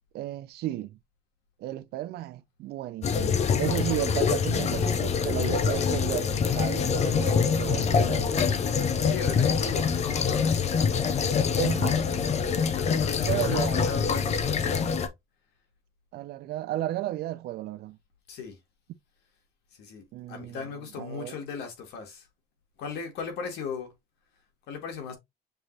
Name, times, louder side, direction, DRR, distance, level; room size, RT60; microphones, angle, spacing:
voice 1, 0.1-1.0 1.6-8.5 11.5-12.0 13.3-13.9 16.1-18.0 20.1-20.7 20.9-21.4, right 14 dB, 70° right, 0.5 m, -33 dB
sound 1, 3.0-15.1, left 6 dB, 40° left, 0.7 m, -25 dB
voice 2, 9.0-10.6 12.7-15.0 18.3-18.6 19.8-22.3 22.8-23.9 24.7-25.2, left 6 dB, 85° left, 1.7 m, -37 dB
6.7 x 2.9 x 2.6 m
cardioid pair, 110°, 17 cm